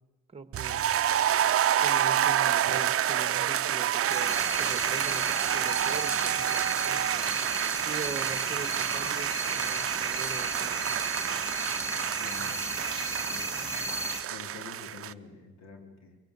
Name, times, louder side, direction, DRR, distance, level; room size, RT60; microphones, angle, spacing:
voice 1, 0.3-0.8 1.8-7.3 7.8-10.8, right 4 dB, 20° right, 11 dB, 1.8 m, -42 dB
sound 1, 0.5-15.1, right 11 dB, 50° right, 0.6 m, -28 dB
sound 2, 4.1-14.2, right 1 dB, 10° left, 1.8 m, -35 dB
voice 2, 12.1-12.7 13.3-13.6 14.3-16.2, left 4 dB, 60° left, 5 dB, 3.6 m, -47 dB
23.0 x 17.0 x 8.3 m, 1.1 s
cardioid pair, 90°, 30 cm